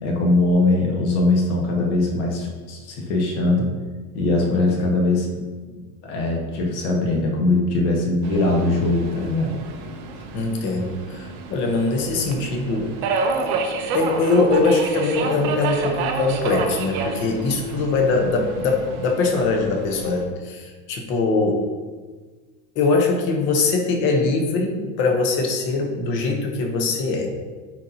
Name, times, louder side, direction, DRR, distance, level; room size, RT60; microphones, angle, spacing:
voice 1, 0.0-3.7 4.1-9.6 17.7-17.8, left 2 dB, 55° left, -1 dB, 1.5 m, -21 dB
Subway metro underground, 8.2-20.3, right 4 dB, 40° right, 0.6 m, -29 dB
voice 2, 10.3-13.0 13.4-13.6 13.9-21.7 22.7-27.3, left 3 dB, 30° left, 2 dB, 0.8 m, -22 dB
10.0 x 4.3 x 2.7 m, 1.4 s
supercardioid pair, 175°, 40 cm